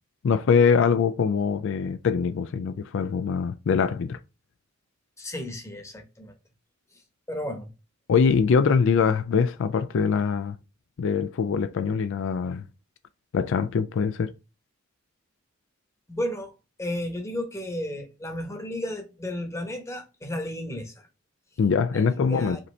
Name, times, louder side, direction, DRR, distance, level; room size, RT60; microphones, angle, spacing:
voice 1, 0.2-4.2 8.1-10.6 11.0-12.6 13.3-14.3 21.6-22.6, left 6 dB, 65° left, 0.4 m, -23 dB
voice 2, 5.2-6.3 7.3-7.7 16.1-16.5 16.8-20.9 21.9-22.6, left 1 dB, 15° left, 1.0 m, -33 dB
5.1 x 2.8 x 3.2 m
head